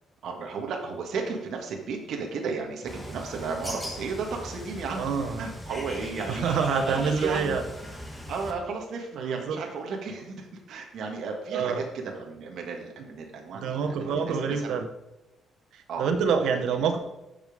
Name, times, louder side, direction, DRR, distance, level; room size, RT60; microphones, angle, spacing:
voice 1, 0.2-5.0 5.4-6.6 6.9-7.6 8.3-14.7 15.9-16.1 16.8-16.9, right 4 dB, 60° right, 1 dB, 1.7 m, -34 dB
Bird, 2.9-8.5, equal, 5° left, 1.4 m, -39 dB
voice 2, 5.0-5.4 6.3-7.6 9.2-9.6 11.5-11.8 13.5-14.9 15.7-17.0, right 6 dB, 80° right, 6 dB, 1.0 m, -26 dB
13.0 x 5.3 x 5.2 m, 0.96 s
cardioid pair, 175°, 0 cm